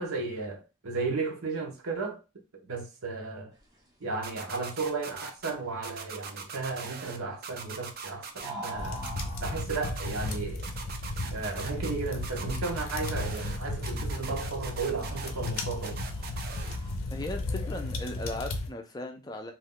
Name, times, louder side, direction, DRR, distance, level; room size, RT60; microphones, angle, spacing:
voice 1, 0.0-2.2 2.5-3.5 4.0-9.0 9.4-10.7 11.3-16.0, right 4 dB, 80° right, 0.8 m, -34 dB
sound 1, 3.5-17.0, equal, 15° right, 0.7 m, -48 dB
sound 2, 4.2-5.5 5.8-7.2 7.4-8.7 9.0-10.4 10.6-11.9 12.2-13.6 13.8-16.8, right 6 dB, 45° right, 0.4 m, -41 dB
sound 3, 8.8-18.7, left 2 dB, 75° left, 0.5 m, -35 dB
voice 2, 17.1-19.5, left 2 dB, 20° left, 0.4 m, -37 dB
2.6 x 2.3 x 3.6 m
head